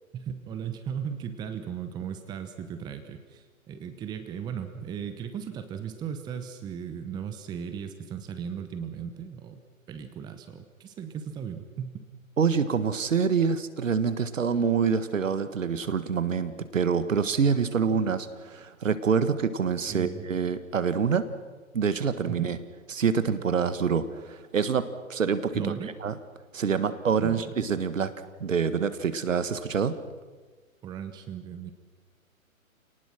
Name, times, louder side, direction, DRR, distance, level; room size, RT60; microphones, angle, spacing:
voice 1, 0.1-9.6 9.9-12.1 19.9-20.4 22.3-22.5 25.5-25.9 27.2-27.4 30.8-31.7, right 8 dB, 10° right, 9 dB, 0.9 m, -36 dB
voice 2, 12.4-21.3 21.7-22.6 22.9-25.7 26.0-26.2 26.5-28.1 28.4-30.0, right 6 dB, 65° right, 12 dB, 1.7 m, -26 dB
27.5 x 18.5 x 6.2 m, 1.3 s
figure-of-eight pair, 125°, 42 cm